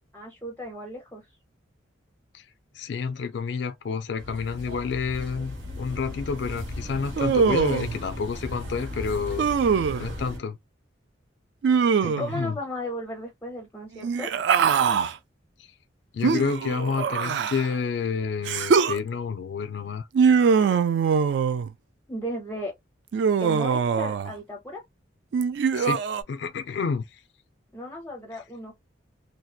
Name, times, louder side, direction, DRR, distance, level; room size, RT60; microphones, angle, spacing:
voice 1, 0.1-1.3 12.0-14.3 22.1-22.7 23.4-24.8 27.7-28.7, equal, 10° left, 0.5 m, -35 dB
voice 2, 2.7-9.5 10.0-10.6 12.0-12.6 15.6-15.7 16.1-20.1 25.7-26.0 26.3-27.2 28.3-28.4, left 5 dB, 65° left, 0.4 m, -29 dB
sound 1, 4.2-10.4, left 1 dB, 85° right, 1.0 m, -36 dB
Human voice, 7.2-8.0 9.4-10.1 11.6-12.4 14.0-15.1 16.2-17.7 18.5-19.0 20.1-21.7 23.1-24.3 25.3-26.2, right 6 dB, 65° right, 0.3 m, -22 dB
2.7 x 2.1 x 2.3 m
head